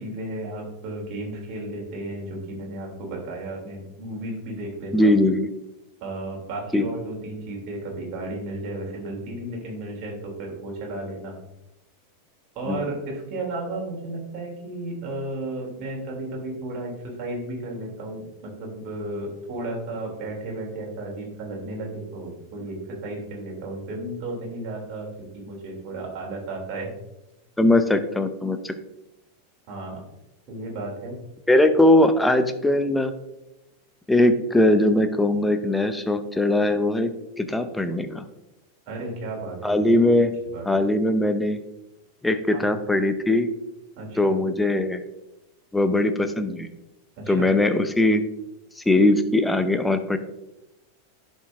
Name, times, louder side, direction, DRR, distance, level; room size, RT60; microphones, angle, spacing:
voice 1, 0.0-5.1 6.0-11.4 12.5-16.9 17.2-25.1 25.3-26.9 29.7-30.0 30.5-31.1 38.9-40.1 40.5-40.7 42.5-42.7 44.0-44.4 47.2-47.5, right 2 dB, 45° right, -2 dB, 2.8 m, -33 dB
voice 2, 4.9-5.5 6.7-6.9 12.7-12.9 27.6-28.7 31.5-33.1 34.1-37.1 37.4-38.2 39.6-40.3 40.7-41.6 42.2-43.5 44.2-45.0 45.7-46.7 47.3-48.2 48.8-50.2, left 1 dB, 5° left, 9 dB, 0.7 m, -20 dB
11.0 x 5.2 x 2.5 m, 0.90 s
figure-of-eight pair, 90°, 0 cm